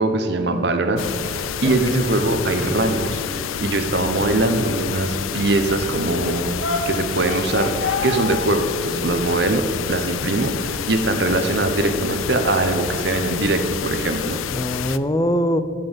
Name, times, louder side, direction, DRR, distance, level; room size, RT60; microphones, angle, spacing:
voice 1, 0.0-6.6 6.8-14.4, right 2 dB, 55° right, 7 dB, 0.9 m, -22 dB
sound 1, 1.0-15.0, left 9 dB, 90° left, 0.4 m, -29 dB
voice 2, 1.6-2.2 4.6-4.7 14.5-15.6, equal, 20° left, 10 dB, 0.5 m, -23 dB
sound 2, 2.6-14.4, left 3 dB, 75° left, 1.8 m, -34 dB
15.0 x 5.5 x 7.3 m, 2.4 s
head